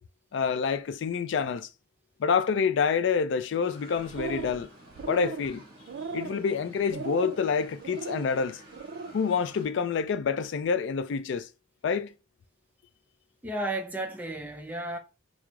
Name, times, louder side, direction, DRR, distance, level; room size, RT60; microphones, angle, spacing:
voice 1, 0.3-1.7 2.2-4.7 5.1-5.6 6.1-8.6 9.1-11.5 11.8-12.1, left 6 dB, 70° left, 0.3 m, -27 dB
sound 1, 3.6-9.6, right 1 dB, 55° right, 1.3 m, -51 dB
sound 2, 4.0-4.6 4.9-5.5 5.9-6.4 6.9-7.4 7.8-8.3 8.7-9.1, right 4 dB, 70° right, 0.4 m, -37 dB
voice 2, 13.4-15.0, right 1 dB, 10° right, 0.5 m, -33 dB
5.9 x 2.0 x 2.3 m
head